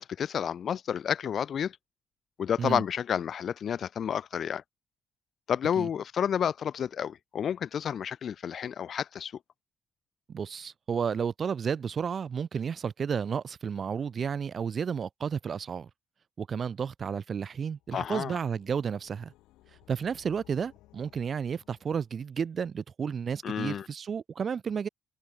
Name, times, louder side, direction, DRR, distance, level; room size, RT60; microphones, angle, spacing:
voice 1, 0.0-1.7 2.4-4.6 5.5-9.3 17.9-18.4 23.4-23.9, left 8 dB, 60° left, 0.4 m, -30 dB
voice 2, 10.3-15.9 16.4-19.3 19.9-24.9, right 6 dB, 55° right, 0.3 m, -32 dB
sound 1, 17.7-22.4, left 17 dB, 85° left, 2.8 m, -60 dB
supercardioid pair, 55°, 0 cm